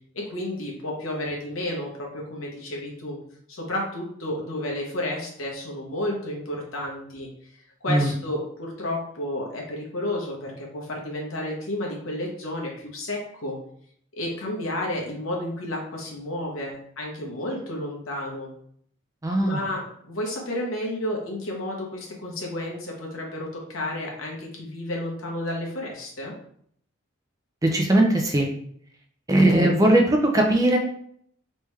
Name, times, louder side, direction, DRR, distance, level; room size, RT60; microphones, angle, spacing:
voice 1, 0.1-3.2 3.5-7.3 7.8-13.6 14.2-18.5 19.4-26.3, left 1 dB, 85° left, -2 dB, 1.1 m, -31 dB
voice 2, 19.2-19.6 27.6-28.5 29.3-30.8, right 1 dB, 15° right, 2 dB, 0.5 m, -19 dB
3.4 x 3.3 x 3.2 m, 0.65 s
head